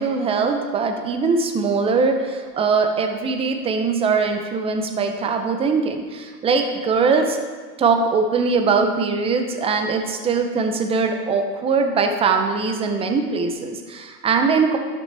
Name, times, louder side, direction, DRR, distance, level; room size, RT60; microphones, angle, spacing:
voice 1, 0.0-7.4 7.8-14.8, right 4 dB, 15° right, 5 dB, 0.4 m, -21 dB
11.5 x 6.0 x 3.3 m, 1.5 s
hypercardioid pair, 115°, 50 cm